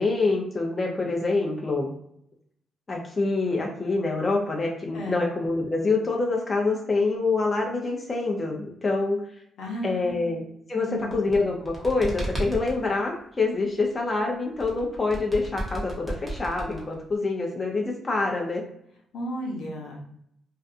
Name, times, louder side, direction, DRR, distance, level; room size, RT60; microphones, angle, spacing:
voice 1, 0.0-1.9 2.9-9.2 9.8-10.4 10.7-18.6, left 3 dB, 30° left, 0 dB, 0.5 m, -26 dB
voice 2, 4.9-5.3 9.6-10.3 10.8-11.1 19.1-20.0, equal, 80° left, -1 dB, 0.8 m, -34 dB
sound 1, 11.0-12.8 14.6-17.2, right 1 dB, 5° right, 0.9 m, -33 dB
2.5 x 2.3 x 2.4 m, 0.71 s
cardioid pair, 100°, 0 cm